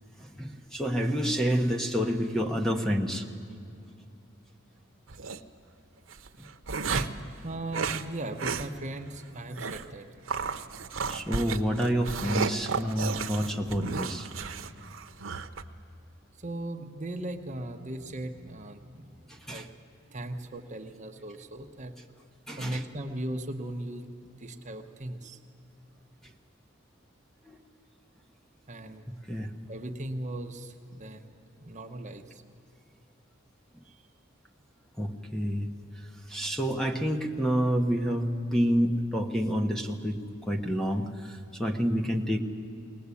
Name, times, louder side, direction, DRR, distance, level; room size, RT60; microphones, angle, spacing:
voice 1, 0.2-3.2 6.4-6.5 6.9-7.3 11.1-14.3 19.3-19.6 22.5-22.8 27.4-27.6 29.3-29.5 35.0-35.7 36.3-42.4, equal, ahead, 4 dB, 1.1 m, -28 dB
sound 1, 5.1-5.4 6.1-7.2 7.7-8.1 8.4-8.7 9.0-9.1 9.6-9.9 10.3-15.6, right 5 dB, 80° right, 0.8 m, -33 dB
voice 2, 7.4-10.1 16.4-19.1 19.5-19.7 20.1-21.9 22.6-24.1 24.4-25.4 28.7-29.0 29.7-32.4 33.8-34.0, right 1 dB, 35° right, 5 dB, 1.0 m, -38 dB
21.0 x 19.0 x 8.4 m, 2.6 s
head